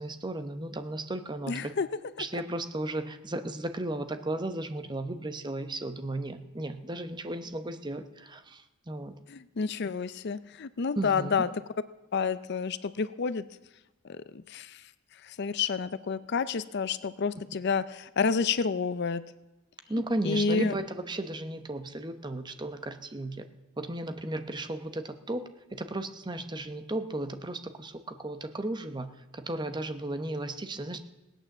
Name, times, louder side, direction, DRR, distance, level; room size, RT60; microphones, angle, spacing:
voice 1, 0.0-1.7 2.2-9.2 11.0-11.4 19.9-23.5 23.8-25.4 25.7-29.1 29.3-31.0, right 1 dB, 20° right, 8 dB, 0.9 m, -35 dB
voice 2, 1.5-1.9 2.2-2.4 9.3-11.5 12.1-13.5 14.0-14.8 15.2-19.2 20.2-20.7, left 5 dB, 55° left, 15 dB, 0.5 m, -29 dB
17.5 x 9.1 x 7.2 m, 1.0 s
head